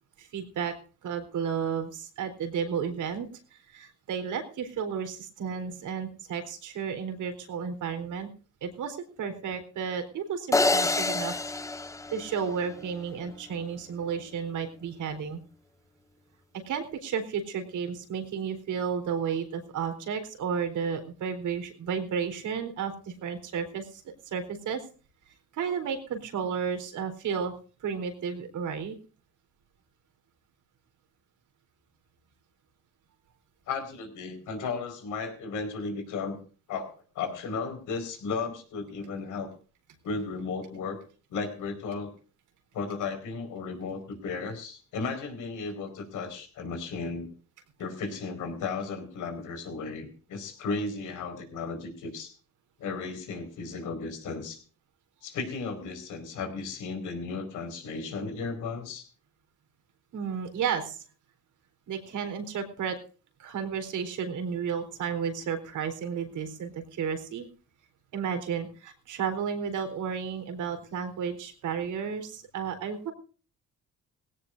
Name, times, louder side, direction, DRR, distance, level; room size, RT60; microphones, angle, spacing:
voice 1, 0.2-0.7 1.0-3.3 3.7-8.3 8.6-11.3 12.1-15.4 16.6-24.8 25.5-27.5 27.8-29.0 60.1-61.0 61.9-63.0 63.4-67.5 68.1-73.1, right 7 dB, 80° right, 7 dB, 3.9 m, -32 dB
sound 1, 10.5-12.9, left 2 dB, 10° left, 0.6 m, -27 dB
voice 2, 33.7-36.4 36.7-39.5 40.0-41.0 41.3-42.1 42.7-47.3 47.8-52.3 52.8-54.6 55.2-59.1, left 4 dB, 85° left, 6 dB, 4.9 m, -35 dB
19.0 x 17.0 x 2.6 m, 0.38 s
cardioid pair, 90°, 30 cm